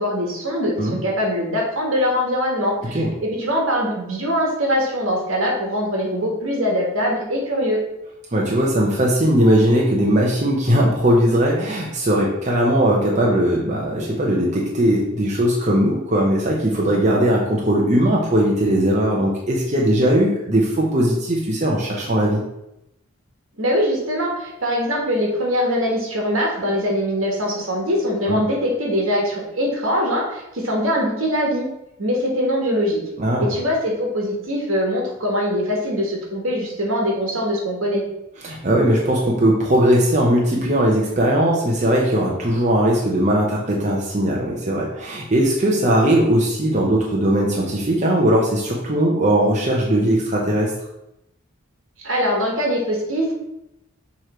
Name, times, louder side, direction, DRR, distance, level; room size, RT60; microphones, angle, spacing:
voice 1, 0.0-7.8 23.6-31.7 32.0-33.0 33.4-38.0 52.0-53.4, equal, 70° right, -1 dB, 1.7 m, -22 dB
voice 2, 8.3-22.4 28.2-28.4 33.2-33.5 38.4-50.7, right 1 dB, 35° right, -3 dB, 0.8 m, -19 dB
7.1 x 3.2 x 4.4 m, 0.87 s
head